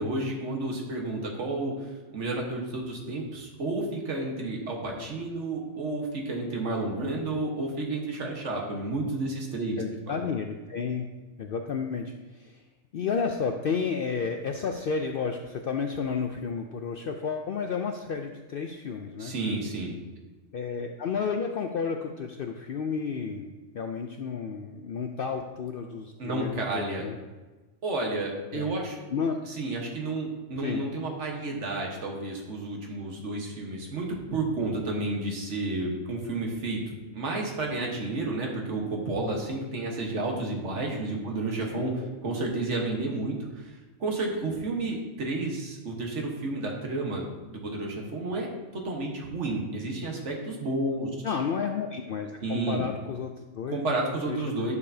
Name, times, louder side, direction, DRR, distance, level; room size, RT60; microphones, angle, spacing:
voice 1, 0.0-10.3 19.2-20.0 26.2-27.0 27.8-29.0 29.4-51.1 52.4-52.8 53.7-54.7, right 2 dB, 65° right, 0 dB, 1.6 m, -31 dB
voice 2, 9.8-11.1 11.4-12.6 12.9-19.3 20.5-27.2 28.5-28.7 29.1-29.4 30.6-30.8 41.7-42.4 51.2-53.8 54.3-54.7, left 5 dB, 65° left, 4 dB, 0.5 m, -32 dB
11.0 x 6.7 x 2.7 m, 1.2 s
omnidirectional pair, 1.4 m